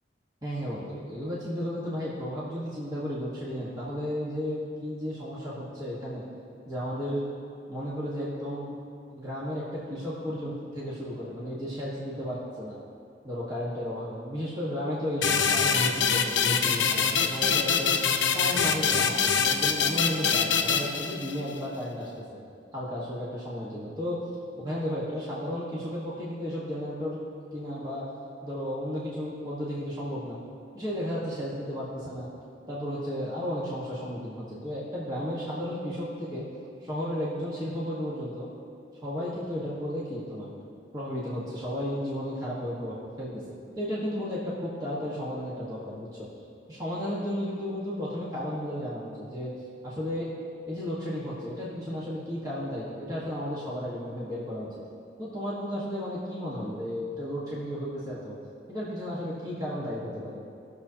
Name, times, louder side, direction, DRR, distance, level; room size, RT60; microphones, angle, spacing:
voice 1, 0.4-6.2 6.7-7.2 7.7-8.7 9.1-12.8 13.2-17.9 18.3-22.4 22.7-24.2 24.6-27.2 27.5-28.0 28.4-30.4 30.7-32.3 32.7-36.5 36.8-38.5 39.0-40.5 40.9-46.3 46.7-49.5 49.8-50.3 50.7-54.8 55.2-58.3 58.7-60.4, equal, 20° right, -8 dB, 1.4 m, -33 dB
sound 1, 15.2-21.6, left 6 dB, 85° left, 0.7 m, -25 dB
18.5 x 6.8 x 2.9 m, 2.4 s
head